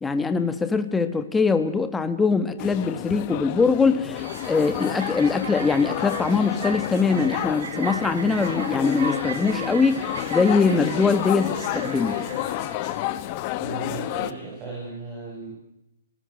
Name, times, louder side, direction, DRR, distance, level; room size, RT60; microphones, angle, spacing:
voice 1, 0.0-12.2, left 4 dB, 10° left, 10 dB, 1.6 m, -22 dB
sound 1, 2.6-14.3, left 14 dB, 35° left, 1.3 m, -30 dB
sound 2, 4.1-13.1, right 5 dB, 70° right, 4.0 m, -37 dB
voice 2, 13.6-15.6, right 4 dB, 20° right, -4 dB, 7.8 m, -36 dB
29.5 x 20.0 x 6.6 m, 0.85 s
hypercardioid pair, 150°, 0 cm